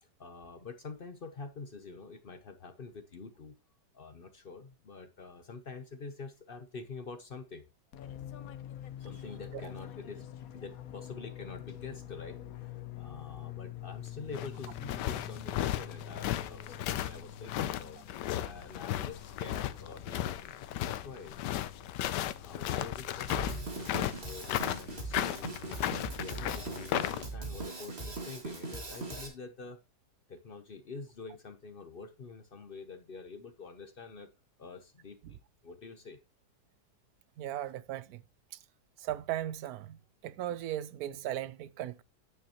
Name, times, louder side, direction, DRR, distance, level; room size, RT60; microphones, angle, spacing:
voice 1, 0.0-3.6 3.9-7.7 9.0-10.3 10.5-18.0 18.4-20.6 20.9-21.5 22.4-25.6 26.0-29.8 30.3-34.3 34.6-35.4 35.6-36.2, left 4 dB, 50° left, 0.7 m, -46 dB
Fixed-wing aircraft airplane, 7.9-27.6, left 10 dB, 65° left, 1.1 m, -47 dB
sound 1, 14.1-27.3, left 13 dB, 90° left, 1.3 m, -34 dB
Drum kit, 23.3-29.3, right 2 dB, 40° right, 2.3 m, -40 dB
voice 2, 37.4-38.2 39.0-40.0 40.2-42.0, right 12 dB, 70° right, 1.0 m, -37 dB
9.4 x 8.8 x 2.9 m
omnidirectional pair, 1.8 m